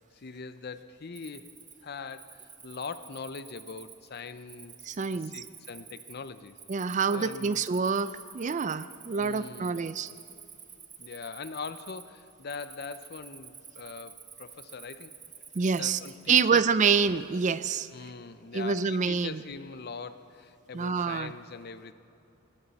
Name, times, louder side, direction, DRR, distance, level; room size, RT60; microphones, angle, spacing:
voice 1, 0.0-1.5 1.8-6.6 7.1-7.6 9.2-9.8 11.0-15.1 15.8-16.6 17.9-21.9, left 5 dB, 50° left, 12 dB, 0.6 m, -42 dB
Cricket, 1.1-16.5, right 7 dB, 20° right, 0.8 m, -50 dB
voice 2, 4.8-5.4 6.7-10.1 15.6-16.0 16.3-17.9 18.5-19.4 20.7-21.3, right 5 dB, 35° right, 14 dB, 0.4 m, -27 dB
20.0 x 17.5 x 4.2 m, 2.8 s
head